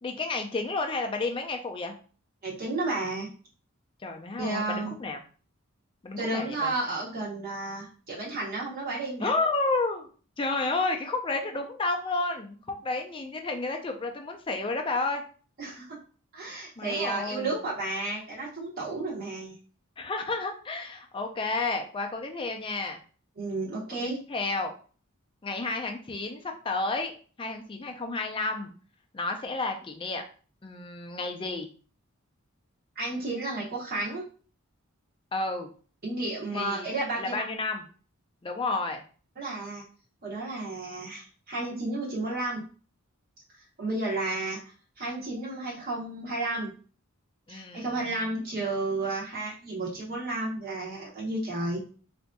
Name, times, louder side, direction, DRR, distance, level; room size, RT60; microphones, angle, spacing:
voice 1, 0.0-1.9 4.0-5.2 6.0-6.7 9.2-10.1 10.4-15.2 16.8-17.5 20.0-23.0 23.9-24.7 25.4-27.1 27.4-28.7 29.1-30.2 30.6-31.7 35.3-35.7 36.5-36.9 37.2-37.8 38.4-39.0 47.5-47.9, left 3 dB, 25° left, 4 dB, 0.4 m, -31 dB
voice 2, 2.4-3.3 4.4-4.9 6.2-9.3 15.6-16.0 16.3-19.6 23.4-24.2 33.0-34.2 36.0-37.4 39.4-39.8 40.2-42.6 43.8-44.6 45.0-46.7 47.5-51.8, right 2 dB, 45° right, -5 dB, 0.9 m, -32 dB
3.9 x 2.5 x 2.2 m, 0.39 s
head